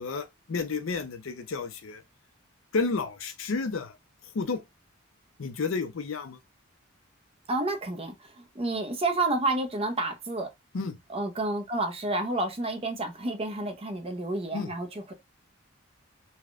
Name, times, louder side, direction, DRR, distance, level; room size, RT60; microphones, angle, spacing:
voice 1, 0.0-2.0 2.7-4.0 4.3-4.6 5.4-6.4 10.7-11.0 14.5-14.7, left 4 dB, 75° left, 0.5 m, -31 dB
voice 2, 7.5-10.5 11.1-15.1, right 2 dB, 30° right, 0.6 m, -30 dB
3.4 x 2.2 x 2.4 m
head